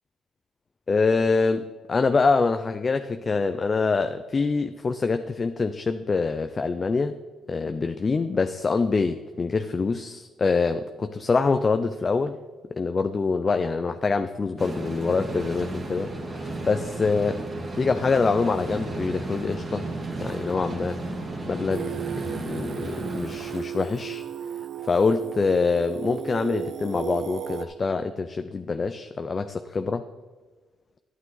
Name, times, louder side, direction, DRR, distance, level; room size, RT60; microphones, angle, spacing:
voice 1, 0.9-7.2 7.5-12.4 12.7-17.5 17.7-19.9 20.2-21.0 21.5-22.0 22.2-24.2 24.9-30.1, left 4 dB, 35° left, 9 dB, 0.5 m, -25 dB
sound 1, 14.6-23.6, right 2 dB, 40° right, 1.9 m, -34 dB
Singing, 21.7-27.6, right 9 dB, 70° right, 0.7 m, -34 dB
11.0 x 9.3 x 4.0 m, 1.4 s
cardioid pair, 90°, 0 cm